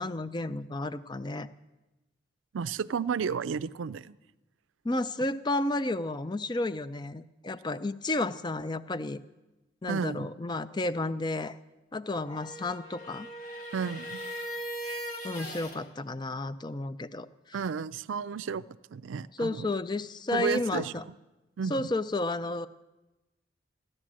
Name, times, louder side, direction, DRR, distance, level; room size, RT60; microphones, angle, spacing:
voice 1, 0.0-1.5 4.8-9.2 9.8-11.6 11.9-13.3 15.2-17.6 19.3-21.0 21.7-22.7, left 2 dB, 20° left, 14 dB, 0.4 m, -32 dB
voice 2, 2.5-4.2 9.9-10.3 13.7-14.2 17.5-18.6 18.9-19.7 20.3-20.9 21.6-21.9, right 6 dB, 80° right, 16 dB, 0.4 m, -32 dB
sound 1, 12.2-15.8, equal, 40° left, 2.3 m, -39 dB
15.0 x 11.0 x 7.5 m, 1.1 s
head